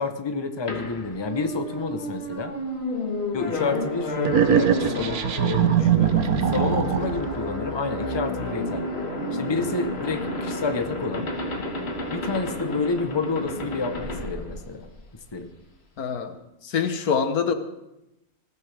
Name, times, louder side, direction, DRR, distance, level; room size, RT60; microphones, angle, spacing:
voice 1, 0.0-2.5 3.3-8.9 9.3-11.3 12.1-14.9 15.3-15.5, left 4 dB, 20° left, 7 dB, 1.0 m, -29 dB
sound 1, 0.7-15.2, left 1 dB, 45° left, 2.0 m, -31 dB
sound 2, 4.2-7.3, right 9 dB, 85° right, 1.4 m, -22 dB
voice 2, 16.0-16.3 16.6-17.5, left 6 dB, 85° left, 8 dB, 1.6 m, -25 dB
19.5 x 16.0 x 3.5 m, 0.90 s
omnidirectional pair, 1.5 m